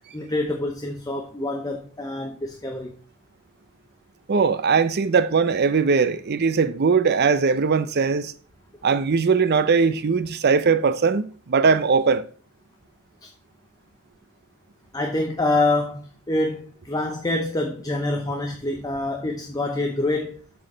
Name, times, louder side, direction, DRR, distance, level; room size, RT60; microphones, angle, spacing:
voice 1, 0.1-2.9 13.2-13.3 14.9-20.4, left 2 dB, 15° left, 0.7 m, -26 dB
voice 2, 4.3-8.3 8.8-12.2, right 5 dB, 45° right, 0.5 m, -20 dB
7.6 x 4.6 x 5.4 m
head